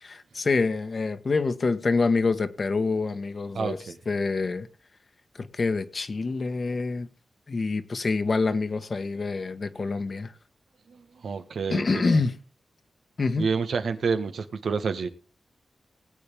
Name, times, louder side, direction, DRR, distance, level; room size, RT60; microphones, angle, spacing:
voice 1, 0.0-4.7 5.3-7.1 7.5-10.3 11.7-12.4 13.2-13.5, left 4 dB, 55° left, 1.5 m, -26 dB
voice 2, 3.5-4.0 10.9-12.2 13.4-15.1, right 5 dB, 80° right, 1.6 m, -29 dB
20.0 x 8.6 x 3.6 m
cardioid pair, 55°, 0 cm